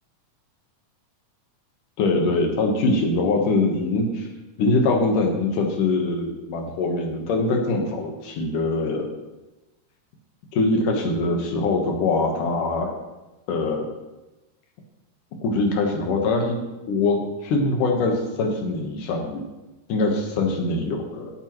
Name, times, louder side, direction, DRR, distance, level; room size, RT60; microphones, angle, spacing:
voice 1, 2.0-4.3 4.6-9.1 10.5-12.9 13.5-13.9 15.4-16.6 16.9-19.4 19.9-21.3, left 3 dB, 70° left, 2 dB, 2.8 m, -23 dB
17.5 x 8.9 x 3.1 m, 1.0 s
omnidirectional pair, 4.0 m